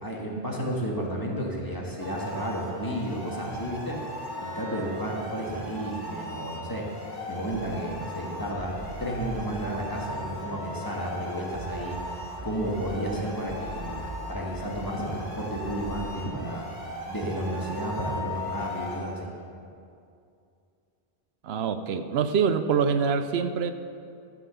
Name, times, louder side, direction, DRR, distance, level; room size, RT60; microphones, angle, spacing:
voice 1, 0.0-4.0 4.4-6.9 7.3-12.0 12.4-16.7 17.1-19.3, right 1 dB, 20° left, -3 dB, 1.6 m, -32 dB
sound 1, 2.0-19.0, left 1 dB, 60° left, 2.8 m, -38 dB
sound 2, 7.5-16.2, right 1 dB, 15° right, 0.8 m, -42 dB
voice 2, 21.4-23.7, right 6 dB, 80° right, 9 dB, 0.8 m, -25 dB
13.0 x 6.1 x 6.8 m, 2.5 s
omnidirectional pair, 1.1 m